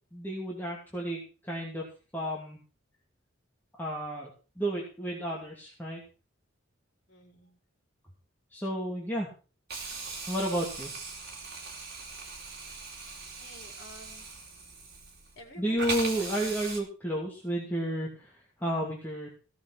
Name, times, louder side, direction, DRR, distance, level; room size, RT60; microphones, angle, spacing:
voice 1, 0.1-2.6 3.8-4.3 4.6-6.0 8.5-9.3 10.3-10.9 15.6-19.3, right 1 dB, 10° left, -3 dB, 2.7 m, -32 dB
voice 2, 7.1-7.5 13.4-14.3 15.3-16.5, left 1 dB, 55° left, 2 dB, 4.3 m, -50 dB
Hiss, 9.7-15.4 15.8-16.8, right 4 dB, 55° right, 4.0 m, -39 dB
16.5 x 7.2 x 6.2 m, 0.36 s
head